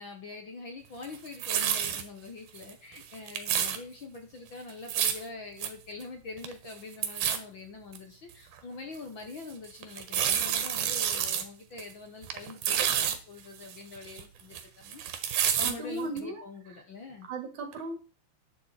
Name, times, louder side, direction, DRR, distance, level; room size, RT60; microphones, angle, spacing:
voice 1, 0.0-15.0 15.6-17.3, left 3 dB, 50° left, 4 dB, 1.8 m, -44 dB
sound 1, 1.0-2.0 2.6-2.7 3.0-3.8 4.7-5.2 5.6-5.7 6.0-6.1 6.4-6.7 7.0-7.4 7.9-8.0 8.6-8.7 9.8-11.4 11.8-11.9 12.2-13.2 13.6-14.6 14.9-15.7 16.2-16.3, right 9 dB, 90° right, 2.8 m, -29 dB
voice 2, 15.6-16.4 17.2-17.9, right 3 dB, 70° right, 6 dB, 3.5 m, -36 dB
11.0 x 8.5 x 4.3 m, 0.34 s
omnidirectional pair, 3.5 m